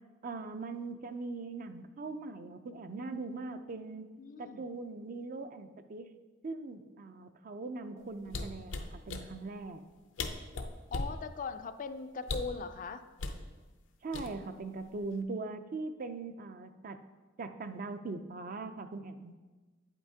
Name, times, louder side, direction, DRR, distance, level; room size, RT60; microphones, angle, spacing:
voice 1, 0.2-4.1 4.4-6.1 6.4-9.8 14.0-17.0 17.4-19.3, right 3 dB, 45° right, 9 dB, 0.4 m, -41 dB
voice 2, 4.2-4.7 10.9-13.0, left 4 dB, 45° left, 10 dB, 0.3 m, -40 dB
sound 1, 8.3-9.3 9.9-10.0 10.2-11.2 12.2-12.6 13.2-13.4 14.1-14.6 14.9-15.2, left 3 dB, 90° left, 0.6 m, -37 dB
8.6 x 8.1 x 2.8 m, 1.3 s
head